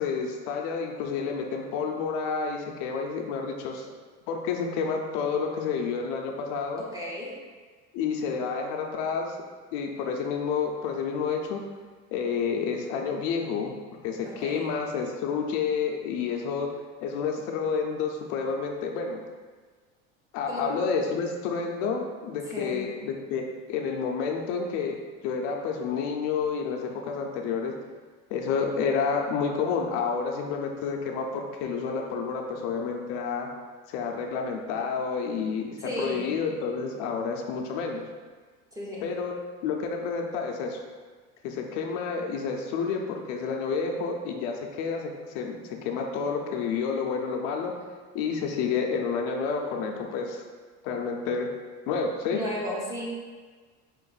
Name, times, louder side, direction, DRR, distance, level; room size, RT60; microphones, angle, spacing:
voice 1, 0.0-3.9 4.3-6.8 7.9-9.4 9.7-11.6 12.1-13.7 14.0-16.7 17.0-19.2 20.3-25.0 25.2-27.7 28.3-33.5 33.9-38.0 39.0-39.3 39.6-40.8 41.4-47.7 48.1-50.4 50.8-51.5 51.9-52.4, left 5 dB, 70° left, 2 dB, 0.6 m, -29 dB
voice 2, 6.8-7.4 14.3-14.7 20.5-20.7 22.5-22.8 35.8-36.3 38.7-39.1 52.3-53.1, equal, 10° right, -5 dB, 0.7 m, -34 dB
4.6 x 2.5 x 3.9 m, 1.5 s
cardioid pair, 155°, 34 cm